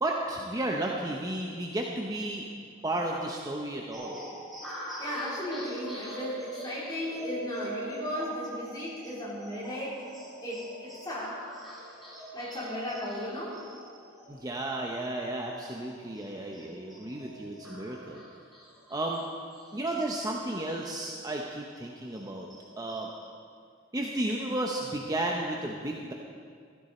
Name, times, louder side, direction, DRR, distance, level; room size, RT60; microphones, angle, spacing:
voice 1, 0.0-2.4 2.8-4.2 14.3-18.2 18.9-19.2 19.7-22.5 22.8-23.1 23.9-26.1, right 1 dB, 20° right, 0 dB, 0.8 m, -33 dB
sound 1, 3.9-20.8 21.2-21.3 21.7-23.3, right 1 dB, ahead, 3.9 m, -44 dB
voice 2, 5.0-10.0 10.4-11.4 12.3-13.6, left 1 dB, 20° left, -7 dB, 3.7 m, -35 dB
15.0 x 13.0 x 4.3 m, 2.2 s
head